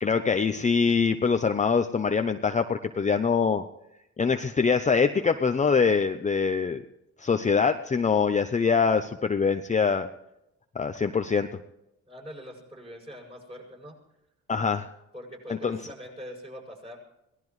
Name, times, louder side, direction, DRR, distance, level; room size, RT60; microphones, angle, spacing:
voice 1, 0.0-3.6 4.2-6.8 7.2-10.1 10.7-11.5 14.5-14.9 15.6-15.8, left 5 dB, 25° left, 8 dB, 0.7 m, -24 dB
voice 2, 12.1-14.0 15.1-17.0, equal, 20° right, -1 dB, 7.8 m, -43 dB
24.0 x 18.0 x 3.2 m, 0.88 s
cardioid pair, 90°, 30 cm